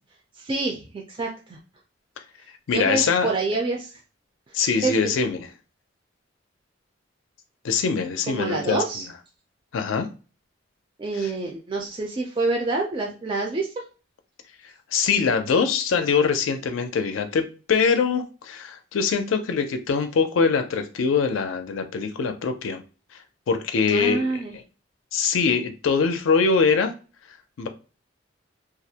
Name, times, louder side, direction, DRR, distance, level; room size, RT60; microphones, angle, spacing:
voice 1, 0.4-1.6 2.7-3.9 4.8-5.0 8.3-9.1 11.0-13.7 23.9-24.5, right 3 dB, 25° right, 0 dB, 0.4 m, -27 dB
voice 2, 2.7-3.3 4.5-5.5 7.6-8.8 9.7-10.1 11.1-11.3 14.9-22.8 23.5-24.3 24.5-24.6 25.1-26.9 27.6-27.7, left 5 dB, 85° left, 7 dB, 0.4 m, -23 dB
2.3 x 2.0 x 2.7 m, 0.34 s
head